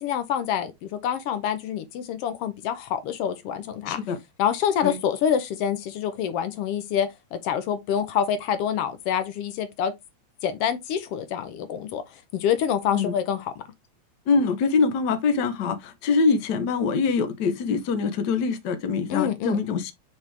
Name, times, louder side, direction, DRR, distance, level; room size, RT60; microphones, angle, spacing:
voice 1, 0.0-4.0 4.4-9.9 10.4-12.0 12.3-13.6 19.1-19.6, left 8 dB, 70° left, 1.5 m, -26 dB
voice 2, 3.9-4.2 4.8-5.0 12.9-13.1 14.3-19.9, left 4 dB, 90° left, 0.9 m, -24 dB
5.5 x 5.1 x 3.3 m
omnidirectional pair, 3.3 m